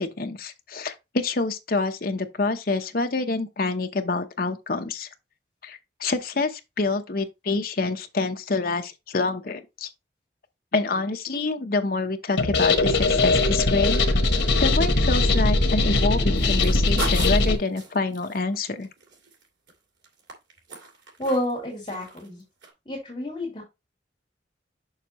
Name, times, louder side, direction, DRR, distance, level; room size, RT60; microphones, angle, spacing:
voice 1, 0.0-5.1 5.6-9.9 10.7-14.0 14.6-18.9, left 3 dB, 55° left, 0.8 m, -27 dB
sound 1, 12.4-17.6, left 2 dB, 85° left, 1.2 m, -21 dB
sound 2, 16.4-19.7 20.0-21.6 21.9-22.3 22.6-22.7, right 3 dB, 85° right, 2.6 m, -38 dB
voice 2, 21.2-22.4 22.9-23.6, left 1 dB, 25° left, 2.8 m, -29 dB
6.5 x 6.4 x 3.0 m
head